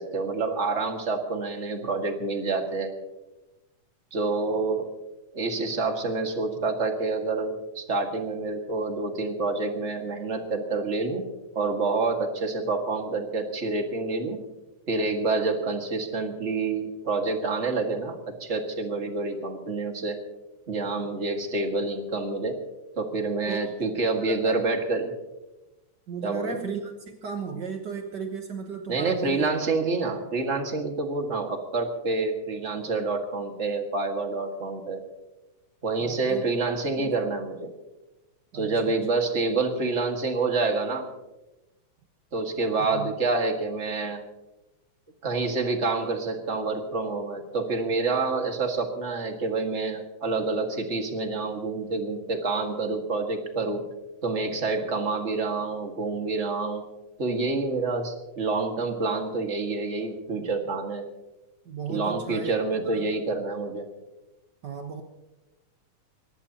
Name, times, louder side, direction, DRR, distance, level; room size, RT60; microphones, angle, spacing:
voice 1, 0.0-2.9 4.1-4.9 5.3-11.2 11.5-14.4 14.9-20.2 20.7-22.6 22.9-25.1 26.2-26.6 28.9-35.0 35.8-37.7 38.5-41.1 42.3-44.2 45.2-53.8 54.2-56.8 57.2-61.0 61.9-63.8, right 3 dB, 30° right, 3 dB, 1.6 m, -28 dB
voice 2, 24.2-24.7 26.1-29.5 36.0-36.5 37.0-37.1 38.5-38.8 42.9-43.1 61.6-63.1 64.6-65.0, right 5 dB, 65° right, 3 dB, 1.0 m, -35 dB
23.0 x 19.0 x 2.9 m, 1.0 s
omnidirectional pair, 3.6 m